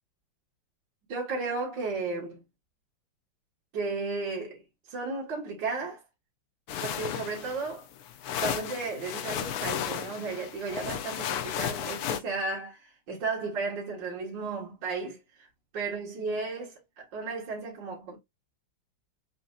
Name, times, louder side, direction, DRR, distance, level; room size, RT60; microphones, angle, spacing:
voice 1, 1.1-2.4 3.7-4.6 4.9-6.0 6.8-7.9 8.4-15.5 15.7-18.2, right 4 dB, 70° right, 2.2 m, -34 dB
sound 1, 6.7-12.2, left 9 dB, 65° left, 1.0 m, -34 dB
6.8 x 2.8 x 2.4 m
omnidirectional pair, 2.1 m